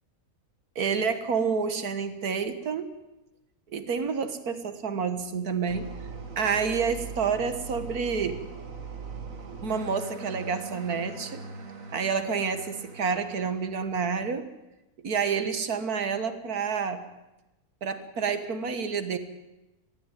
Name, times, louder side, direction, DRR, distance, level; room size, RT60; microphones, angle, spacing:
voice 1, 0.8-2.9 3.7-5.9 6.4-8.4 9.6-11.4 11.9-14.5 15.0-17.0 17.8-19.2, right 6 dB, 85° right, 11 dB, 2.0 m, -29 dB
sound 1, 5.7-14.0, right 4 dB, 60° right, 2.3 m, -41 dB
21.0 x 15.0 x 9.2 m, 0.98 s
omnidirectional pair, 1.6 m